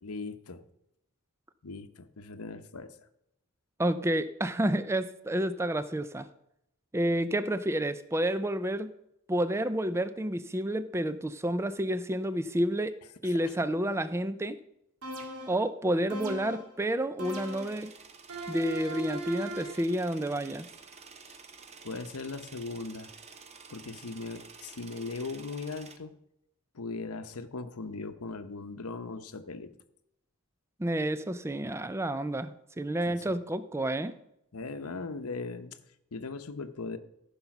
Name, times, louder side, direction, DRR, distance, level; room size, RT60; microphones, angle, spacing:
voice 1, 0.0-0.6 1.6-3.1 13.2-13.5 21.3-21.4 21.8-23.1 23.7-26.1 26.7-29.7 33.0-33.3 34.5-35.8 36.1-37.0, left 3 dB, 80° left, 10 dB, 0.9 m, -39 dB
voice 2, 3.8-6.3 6.9-8.9 9.3-13.0 13.2-14.6 15.5-17.9 18.5-20.7 30.8-34.1, right 1 dB, 10° right, 13 dB, 0.4 m, -30 dB
sound 1, 15.0-15.7 16.1-16.7 17.2-17.8 18.3-19.9, right 1 dB, 80° right, 1.9 m, -39 dB
sound 2, 17.2-26.0, right 5 dB, 30° right, 0.8 m, -51 dB
14.5 x 5.5 x 5.9 m, 0.80 s
head